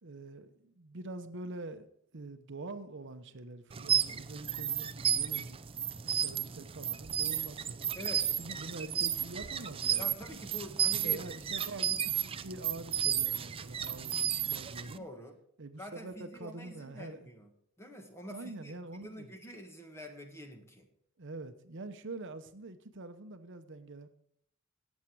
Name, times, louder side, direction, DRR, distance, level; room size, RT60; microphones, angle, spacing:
voice 1, 0.0-5.6 6.0-7.8 8.4-10.1 10.9-15.1 15.6-17.3 18.3-19.3 21.2-24.1, right 2 dB, 60° right, 9 dB, 0.9 m, -45 dB
sound 1, 3.7-15.0, right 9 dB, 25° right, 0.5 m, -33 dB
voice 2, 7.9-8.6 10.0-11.2 14.9-15.4 15.8-17.5 17.8-20.9, left 1 dB, 15° left, 4 dB, 1.8 m, -47 dB
17.5 x 7.3 x 4.7 m, 0.69 s
head